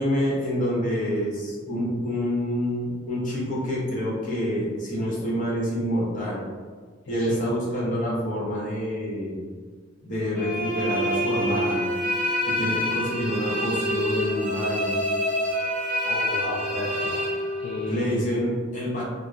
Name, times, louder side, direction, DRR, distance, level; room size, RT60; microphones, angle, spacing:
voice 1, 0.0-6.4 7.1-9.4 10.0-11.8 12.4-15.0 17.9-19.0, equal, 40° left, -6 dB, 0.8 m, -27 dB
sound 1, 10.4-18.1, equal, 40° right, 0.6 m, -27 dB
voice 2, 16.0-18.2, left 2 dB, 65° left, -5 dB, 0.4 m, -33 dB
2.4 x 2.0 x 3.1 m, 1.5 s
head